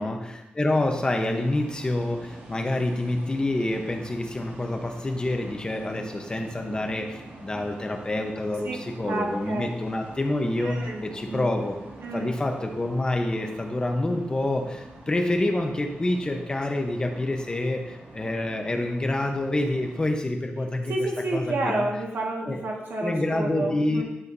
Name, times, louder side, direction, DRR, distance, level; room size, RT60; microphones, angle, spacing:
voice 1, 0.0-11.8 12.1-20.9 21.3-21.8 22.5-22.6 23.0-24.0, left 1 dB, 20° left, 3 dB, 0.9 m, -27 dB
sound 1, 0.7-20.0, right 2 dB, 60° right, 2.1 m, -45 dB
voice 2, 9.1-9.7 10.6-11.0 11.3-11.5 12.0-12.3 20.9-24.0, right 2 dB, 80° right, -1 dB, 1.7 m, -30 dB
11.0 x 7.8 x 2.7 m, 0.91 s
wide cardioid pair, 155°, 4 cm